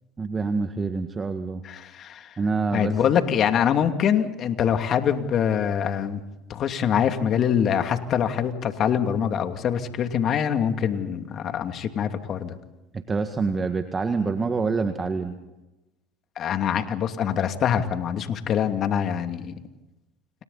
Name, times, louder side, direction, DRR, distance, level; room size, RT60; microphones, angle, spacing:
voice 1, 0.2-1.6 2.4-3.0 12.9-15.4, right 4 dB, 25° right, 7 dB, 1.8 m, -26 dB
voice 2, 1.6-2.4 2.7-6.2 6.5-12.6 16.4-19.5, left 8 dB, 45° left, 7 dB, 2.6 m, -24 dB
29.5 x 28.0 x 4.2 m, 1.0 s
hypercardioid pair, 80°, 0 cm